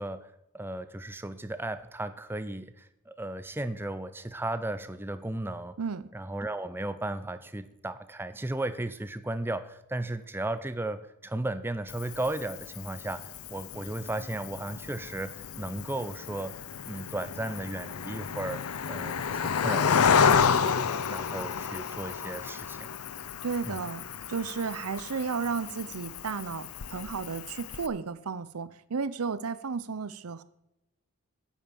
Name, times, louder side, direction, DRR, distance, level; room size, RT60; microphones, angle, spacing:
voice 1, 0.0-5.8 6.1-16.6 16.8-18.6 18.9-20.8 21.1-22.9 23.6-23.8, right 1 dB, 10° right, 12 dB, 0.5 m, -35 dB
voice 2, 5.8-6.1 23.4-30.4, right 5 dB, 85° right, 15 dB, 0.7 m, -33 dB
Cricket, 11.9-27.9, left 6 dB, 85° left, 0.6 m, -31 dB
8.9 x 8.9 x 7.0 m, 0.86 s
head